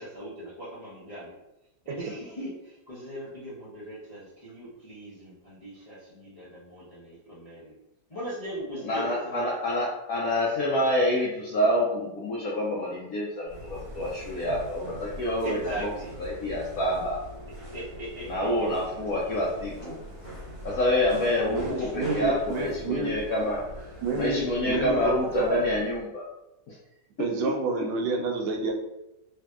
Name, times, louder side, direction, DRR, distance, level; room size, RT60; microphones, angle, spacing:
voice 1, 0.0-1.3 1.8-7.7 8.1-9.5 15.4-16.1 17.7-18.7 21.8-21.9, right 1 dB, 45° left, -10 dB, 0.4 m, -39 dB
voice 2, 8.8-15.9 16.2-17.2 18.3-20.0 20.6-23.6 24.1-26.3 26.7-26.8 27.2-27.9, left 1 dB, 75° left, -5 dB, 0.8 m, -27 dB
sound 1, 13.5-26.1, equal, 40° right, 1.1 m, -42 dB
voice 3, 21.5-23.1 24.0-25.6 27.2-28.7, right 3 dB, 85° right, 2 dB, 1.3 m, -29 dB
3.2 x 2.7 x 2.3 m, 0.91 s
omnidirectional pair, 2.0 m